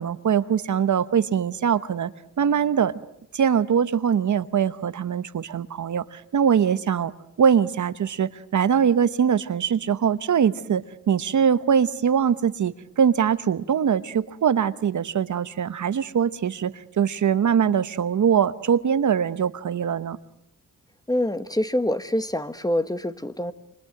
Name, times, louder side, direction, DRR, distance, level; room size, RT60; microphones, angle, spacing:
voice 1, 0.0-2.1 2.4-2.9 3.3-7.1 7.4-20.2, right 7 dB, 60° right, 14 dB, 1.0 m, -22 dB
voice 2, 21.1-23.5, left 1 dB, 10° left, 12 dB, 1.2 m, -25 dB
28.5 x 24.5 x 7.8 m, 0.83 s
wide cardioid pair, 110°, 34 cm